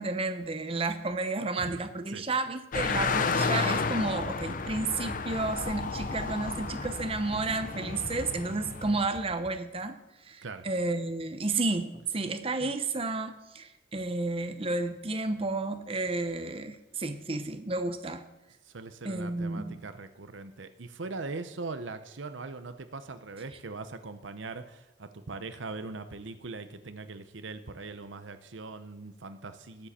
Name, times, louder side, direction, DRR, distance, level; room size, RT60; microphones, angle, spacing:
voice 1, 0.0-18.2 19.0-19.8, right 3 dB, 30° right, 8 dB, 0.7 m, -32 dB
sound 1, 2.7-9.1, left 4 dB, 45° left, 0.7 m, -32 dB
sound 2, 3.8-8.5 8.8-9.6, equal, 5° left, 0.5 m, -46 dB
voice 2, 18.7-29.9, right 3 dB, 75° right, 10 dB, 0.8 m, -41 dB
19.5 x 7.6 x 4.3 m, 0.94 s
head